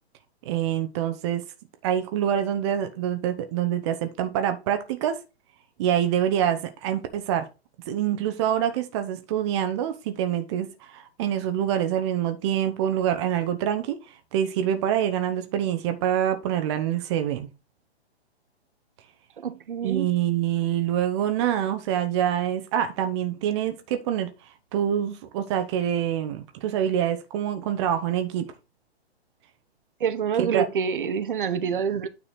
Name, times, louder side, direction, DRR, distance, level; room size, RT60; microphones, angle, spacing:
voice 1, 0.4-1.4 1.8-5.2 5.8-7.5 7.9-17.5 19.8-24.3 24.7-28.5 30.4-30.7, right 10 dB, 25° right, 0.8 m, -26 dB
voice 2, 19.4-20.1 30.0-32.1, right 7 dB, 50° right, 0.9 m, -27 dB
9.3 x 4.3 x 4.2 m
figure-of-eight pair, 120°, 33 cm